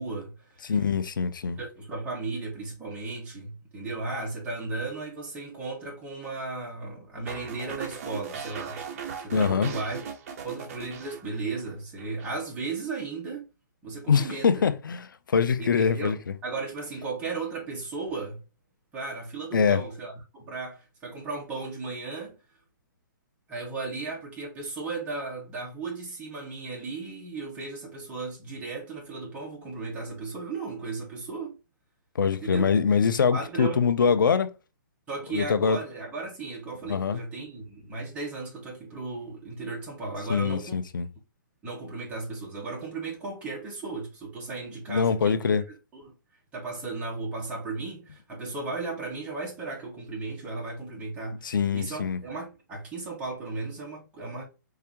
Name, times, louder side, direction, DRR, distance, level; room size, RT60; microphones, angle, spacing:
voice 1, 0.0-0.7 1.6-8.8 9.2-13.4 13.8-14.6 15.6-18.4 18.9-22.3 23.5-31.5 32.4-32.7 33.3-33.8 35.1-40.8 41.6-46.1 46.5-54.4, right 3 dB, 10° right, 1.9 m, -35 dB
voice 2, 0.6-1.6 9.3-9.7 14.1-16.3 19.5-19.8 32.1-34.5 35.3-35.8 36.9-37.2 40.3-41.1 44.9-45.6 51.4-52.2, left 6 dB, 85° left, 0.8 m, -24 dB
sound 1, 7.3-11.7 12.0-12.4, right 6 dB, 45° right, 1.0 m, -38 dB
4.9 x 3.3 x 3.0 m
hypercardioid pair, 160°, 11 cm